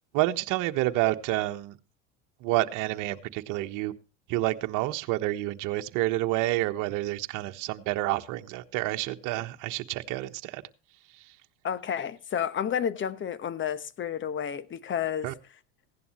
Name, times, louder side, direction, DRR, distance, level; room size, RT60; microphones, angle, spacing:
voice 1, 0.1-1.8 2.4-3.9 4.3-10.6 15.2-15.3, right 17 dB, 55° right, 1.4 m, -29 dB
voice 2, 11.6-15.3, left 8 dB, 30° left, 1.2 m, -31 dB
16.5 x 11.0 x 3.2 m
hypercardioid pair, 95°, 36 cm